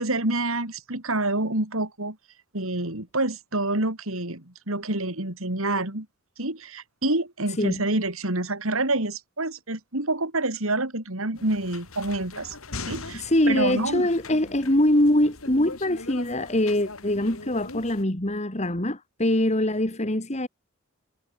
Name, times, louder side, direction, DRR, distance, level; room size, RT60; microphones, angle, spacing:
voice 1, 0.0-2.2 2.5-6.1 6.4-12.6 12.9-14.1, right 2 dB, 70° right, 4.1 m, -27 dB
sound 1, 11.4-18.0, left 3 dB, 70° left, 3.6 m, -40 dB
voice 2, 13.1-20.5, left 1 dB, 30° left, 2.4 m, -23 dB
head